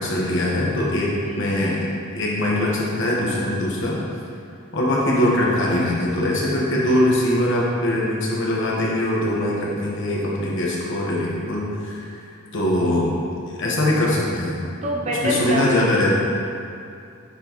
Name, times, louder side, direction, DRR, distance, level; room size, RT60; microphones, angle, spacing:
voice 1, 0.0-1.8 2.1-3.9 4.7-12.0 12.5-13.1 13.6-14.6 15.2-16.1, left 1 dB, 55° left, -4 dB, 1.2 m, -22 dB
voice 2, 14.8-15.9, equal, 30° right, -1 dB, 0.6 m, -25 dB
8.6 x 4.5 x 3.0 m, 2.5 s
head